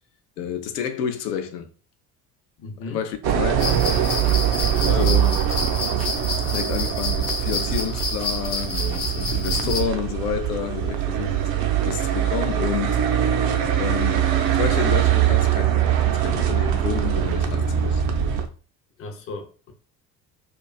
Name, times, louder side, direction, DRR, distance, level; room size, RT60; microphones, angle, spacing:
voice 1, 0.4-1.7 2.9-3.7 4.9-5.4 6.4-11.4 11.8-13.0 13.8-18.0, left 8 dB, 75° left, 0.5 m, -29 dB
voice 2, 2.6-3.0 4.9-5.2 9.6-10.0 19.0-19.7, left 3 dB, 30° left, 0.5 m, -34 dB
sound 1, 3.2-18.4, right 10 dB, 60° right, 0.5 m, -22 dB
sound 2, 3.6-9.8, left 3 dB, 55° left, 0.9 m, -29 dB
2.3 x 2.3 x 2.3 m
figure-of-eight pair, 55°, 47 cm